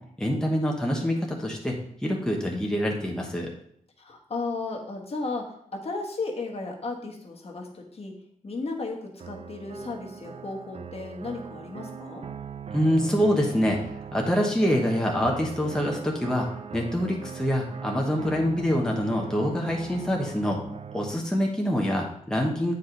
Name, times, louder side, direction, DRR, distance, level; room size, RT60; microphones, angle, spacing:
voice 1, 0.2-1.8 2.0-3.5 12.7-13.8 14.1-16.5 16.7-20.6 20.9-22.7, equal, 5° left, -1 dB, 1.2 m, -25 dB
voice 2, 4.0-8.2 8.4-12.2, left 3 dB, 45° left, 0 dB, 1.4 m, -34 dB
sound 1, 9.2-21.2, right 7 dB, 45° right, 0.5 m, -40 dB
8.2 x 4.7 x 4.0 m, 0.70 s
wide cardioid pair, 95°, 14 cm